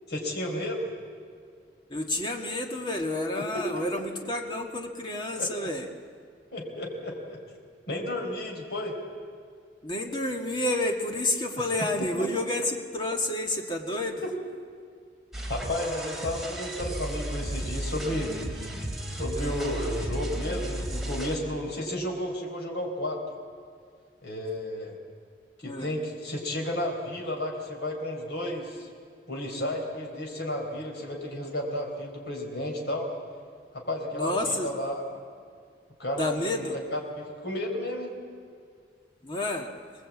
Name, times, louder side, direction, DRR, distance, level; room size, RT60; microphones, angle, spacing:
voice 1, 0.1-0.9 3.4-3.8 5.4-5.7 6.5-7.4 7.9-9.0 11.5-11.6 12.2-12.3 15.5-18.3 19.1-23.2 24.2-24.9 25.6-28.9 29.3-33.1 33.7-35.0 36.0-38.1, left 1 dB, 80° left, 1 dB, 4.3 m, -32 dB
voice 2, 1.9-5.9 9.8-14.2 19.4-19.6 25.6-25.9 34.1-34.7 36.1-36.8 39.2-39.7, left 2 dB, 25° left, 3 dB, 1.8 m, -30 dB
sound 1, 15.3-21.4, right 1 dB, ahead, 3.1 m, -34 dB
24.0 x 19.5 x 8.5 m, 2.1 s
head